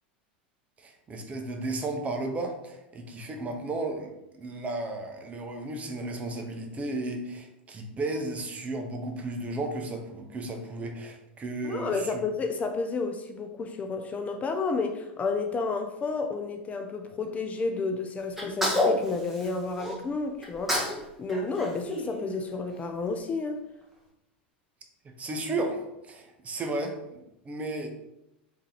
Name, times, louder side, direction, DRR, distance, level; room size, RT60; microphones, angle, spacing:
voice 1, 0.8-12.2 25.2-25.8 26.1-27.9, right 2 dB, 25° right, 4 dB, 0.6 m, -34 dB
voice 2, 11.6-23.6, left 4 dB, 25° left, 6 dB, 0.4 m, -31 dB
Sneeze, 18.4-20.0 20.4-21.0 21.3-22.7, left 1 dB, 5° right, 1.1 m, -29 dB
3.6 x 2.8 x 3.3 m, 0.88 s
hypercardioid pair, 95°, 6 cm